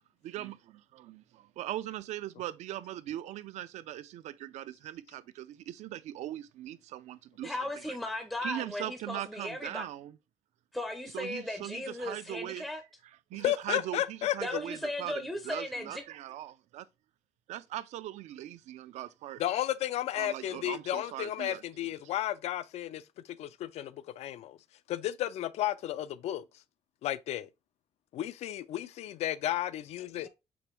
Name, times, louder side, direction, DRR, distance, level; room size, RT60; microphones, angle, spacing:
voice 1, 0.2-7.6 7.9-8.0 8.4-10.2 11.1-12.7 13.3-16.9 17.5-19.4 20.1-21.9, right 13 dB, 80° right, 0.4 m, -40 dB
voice 2, 7.4-9.9 10.7-12.8 14.4-16.0, left 1 dB, ahead, 0.4 m, -36 dB
voice 3, 13.4-14.6 19.4-23.0 23.4-24.6 24.9-26.4 27.0-27.5 28.1-30.3, left 13 dB, 70° left, 0.4 m, -33 dB
4.9 x 3.0 x 3.0 m
cardioid pair, 160°, 12 cm